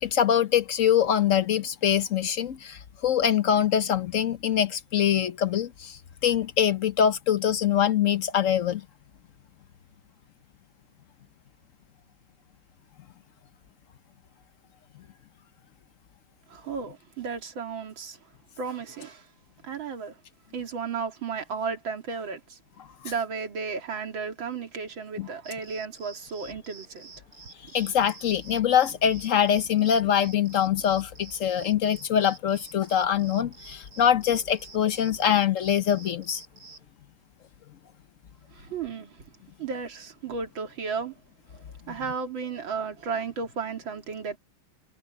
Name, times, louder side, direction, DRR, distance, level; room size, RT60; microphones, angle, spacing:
voice 1, 0.0-8.8 25.2-25.3 27.7-36.4, left 9 dB, 55° left, 0.9 m, -24 dB
voice 2, 16.5-18.2 18.6-19.3 19.6-20.2 20.5-22.6 23.0-27.1 38.5-39.2 39.6-41.1 41.5-44.4, right 5 dB, 90° right, 3.0 m, -34 dB
sound 1, 25.4-36.8, right 3 dB, 55° right, 6.1 m, -50 dB
omnidirectional pair, 2.1 m